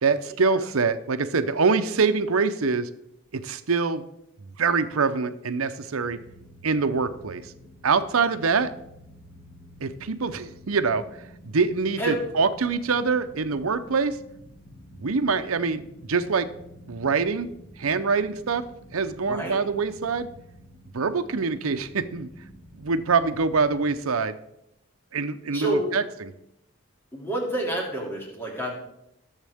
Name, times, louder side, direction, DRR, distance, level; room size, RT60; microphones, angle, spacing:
voice 1, 0.0-2.9 3.3-4.0 4.4-6.2 6.6-7.5 7.8-8.7 9.8-11.0 11.4-14.2 15.0-16.5 16.9-17.5 17.8-18.7 18.9-20.3 20.9-22.3 22.8-24.4 25.1-26.3, right 4 dB, 90° right, 11 dB, 0.7 m, -24 dB
sound 1, 6.0-24.0, equal, 70° left, 1.8 m, -49 dB
voice 2, 19.2-19.6 25.5-26.0 27.1-28.7, right 1 dB, 10° left, -2 dB, 2.8 m, -28 dB
20.0 x 7.3 x 3.6 m, 0.82 s
head